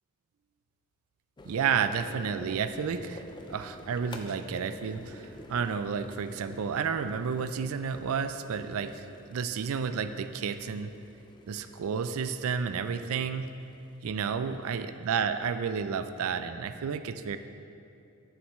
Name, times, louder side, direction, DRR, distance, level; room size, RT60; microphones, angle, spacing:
sound 1, 1.4-15.9, left 2 dB, 20° left, 0.4 m, -49 dB
voice 1, 1.4-3.2 3.5-10.9 11.5-13.5 14.0-17.4, right 6 dB, 65° right, 10 dB, 0.4 m, -31 dB
10.5 x 7.2 x 3.1 m, 2.6 s
head